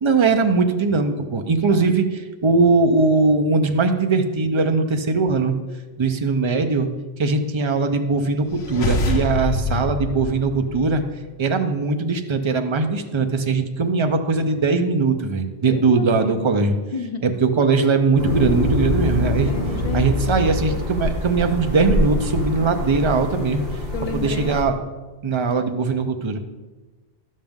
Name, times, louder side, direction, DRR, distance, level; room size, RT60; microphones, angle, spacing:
voice 1, 0.0-5.6 6.0-6.9 7.2-11.0 11.4-16.8 17.2-19.5 19.9-23.6 24.1-24.7 25.2-26.4, right 4 dB, 35° right, 7 dB, 0.5 m, -20 dB
sound 1, 8.5-11.3, left 2 dB, 85° left, 1.1 m, -25 dB
voice 2, 15.7-16.5 16.9-17.2 19.4-20.8 23.9-24.7, left 4 dB, 50° left, 6 dB, 0.4 m, -32 dB
sound 2, 18.2-24.6, left 1 dB, 55° right, 2.3 m, -25 dB
11.5 x 7.4 x 3.6 m, 1.3 s
omnidirectional pair, 1.2 m